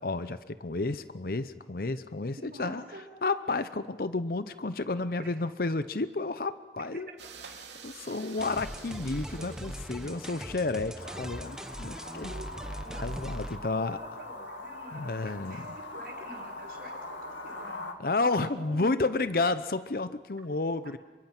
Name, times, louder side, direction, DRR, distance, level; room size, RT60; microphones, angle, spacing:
voice 1, 0.0-2.8 3.2-7.1 7.8-11.5 11.8-12.3 13.0-14.0 14.9-15.8 18.0-21.0, left 3 dB, 55° left, 13 dB, 0.7 m, -31 dB
voice 2, 2.4-3.0 5.2-5.3 10.3-10.4 11.0-11.5 12.0-13.2 13.6-17.9 18.4-19.3, right 1 dB, 55° right, -1 dB, 6.2 m, -46 dB
sound 1, 7.2-11.2, right 6 dB, 85° right, 2.8 m, -50 dB
sound 2, 8.4-13.6, equal, 5° right, 0.9 m, -40 dB
sound 3, 11.0-17.9, left 2 dB, 90° left, 2.2 m, -42 dB
27.0 x 23.5 x 6.0 m, 1.2 s
head